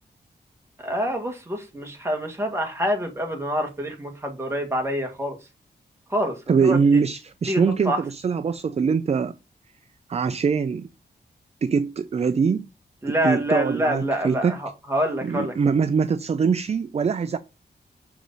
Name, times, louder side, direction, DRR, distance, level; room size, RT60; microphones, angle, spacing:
voice 1, 0.8-5.4 6.1-7.0 7.5-8.0 13.0-15.5, equal, 15° right, 1.7 m, -26 dB
voice 2, 6.5-9.3 10.1-10.9 11.6-12.7 13.1-14.6 15.2-17.4, right 5 dB, 40° right, 0.4 m, -23 dB
6.7 x 4.7 x 4.0 m
wide cardioid pair, 120°, 17 cm